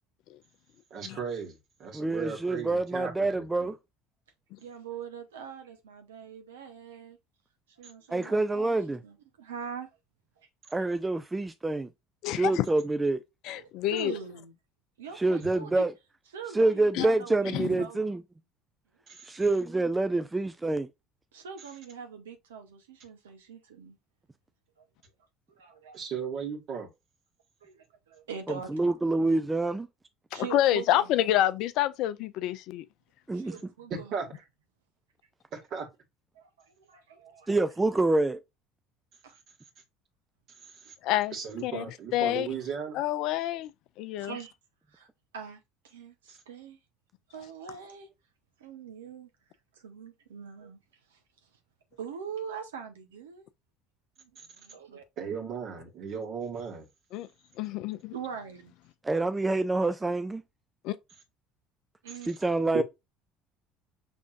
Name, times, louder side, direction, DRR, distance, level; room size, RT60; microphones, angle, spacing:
voice 1, 0.9-3.7 7.8-7.9 19.1-19.3 25.9-26.9 33.9-34.3 35.5-35.9 40.8-40.9 41.3-43.0 55.2-56.9 62.7-62.8, right 6 dB, 50° right, 1.9 m, -36 dB
voice 2, 1.9-3.8 8.1-9.0 10.7-11.9 12.3-13.2 15.2-15.9 16.5-18.2 19.3-20.9 28.7-29.9 33.3-33.6 37.5-38.4 59.0-60.4 62.3-62.8, right 2 dB, 15° right, 0.5 m, -26 dB
voice 3, 4.6-7.2 7.8-8.8 9.0-9.9 10.4-10.5 13.5-14.5 15.0-15.9 16.3-18.1 21.3-24.0 24.8-24.9 25.5-26.0 27.6-28.8 30.3-31.2 33.3-34.2 36.3-37.5 39.2-39.4 44.2-44.5 44.9-45.1 45.3-46.8 47.3-48.1 48.6-49.3 49.8-50.8 51.1-51.2 52.0-53.4 54.2-55.0 58.1-58.7 62.0-62.3, right 7 dB, 75° right, 1.0 m, -43 dB
voice 4, 12.2-12.7 13.4-14.1 16.9-17.1 17.5-17.7 30.3-32.8 41.0-41.4 41.6-41.8 42.1-42.5 42.9-43.7 44.0-44.4 57.1-57.3 57.6-58.1 60.8-61.0, left 13 dB, 55° left, 0.4 m, -27 dB
6.1 x 3.4 x 2.5 m
figure-of-eight pair, 60°, 0 cm